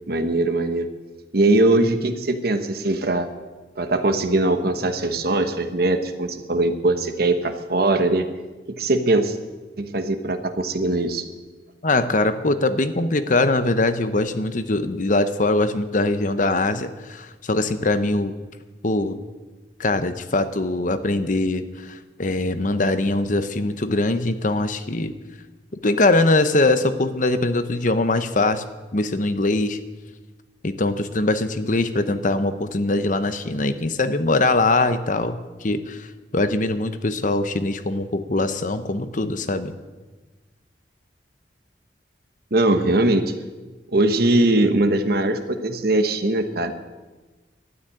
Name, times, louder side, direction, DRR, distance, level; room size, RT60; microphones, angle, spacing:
voice 1, 0.1-0.9 1.3-3.3 3.8-8.3 8.8-9.4 9.8-11.3 42.5-43.3 43.9-46.7, right 2 dB, 60° right, 8 dB, 1.2 m, -21 dB
voice 2, 11.8-18.3 18.8-19.2 19.8-25.1 25.8-28.6 28.9-29.8 30.6-36.1 36.3-39.8, left 2 dB, 45° left, 10 dB, 0.9 m, -22 dB
12.5 x 9.3 x 9.9 m, 1.2 s
head